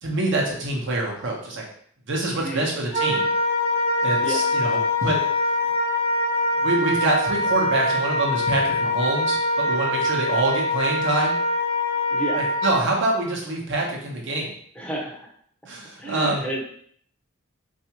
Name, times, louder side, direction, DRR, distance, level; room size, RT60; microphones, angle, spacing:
voice 1, 0.0-1.6 2.1-3.3 4.0-5.2 6.5-11.4 12.3-14.5 15.7-16.4, right 2 dB, 65° right, -2 dB, 0.9 m, -25 dB
Wind instrument woodwind instrument, 2.9-12.8, left 1 dB, 75° left, 0.8 m, -23 dB
voice 2, 12.1-12.4 14.8-15.3 16.0-16.6, right 2 dB, 5° left, -2 dB, 0.6 m, -30 dB
3.4 x 2.6 x 2.9 m, 0.62 s
head